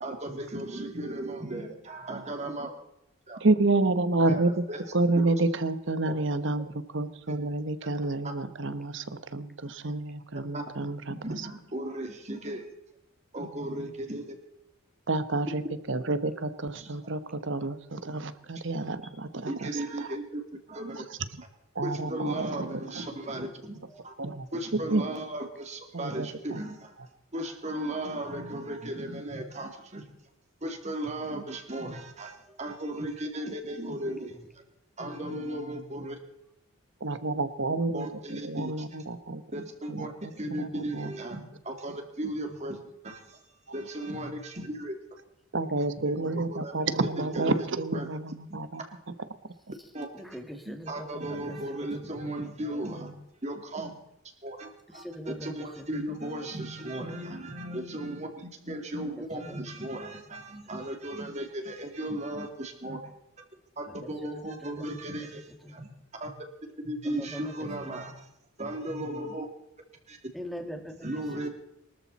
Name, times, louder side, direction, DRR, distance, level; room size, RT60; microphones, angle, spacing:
voice 1, 0.0-2.7 3.3-3.4 4.3-4.4 4.7-4.8 6.1-6.2 10.5-10.6 11.1-12.7 13.3-14.3 16.8-16.9 19.5-21.0 21.8-24.1 24.5-26.9 27.3-30.0 30.6-34.3 35.0-36.2 37.9-38.7 39.5-42.8 43.0-43.4 43.7-45.0 46.5-46.7 47.2-47.6 47.9-48.1 48.5-48.9 49.9-50.1 50.7-53.1 53.4-54.0 54.4-63.0 63.8-65.9 66.2-66.3 66.8-68.3 68.6-69.5 70.1-70.2 71.0-71.5, right 1 dB, 35° right, 4 dB, 2.8 m, -36 dB
voice 2, 3.4-4.6 4.9-11.5 15.1-20.1 20.9-21.2 21.7-22.7 24.2-24.5 24.7-25.0 25.9-26.6 37.0-40.3 40.6-41.1 45.5-48.8 49.4-49.5, right 2 dB, 60° right, 12 dB, 1.1 m, -29 dB
voice 3, 49.8-52.2 54.9-56.8 59.2-59.7 60.3-60.7 63.9-65.8 67.0-67.7 70.3-71.5, equal, ahead, 3 dB, 2.3 m, -44 dB
23.5 x 13.5 x 4.2 m, 0.85 s
head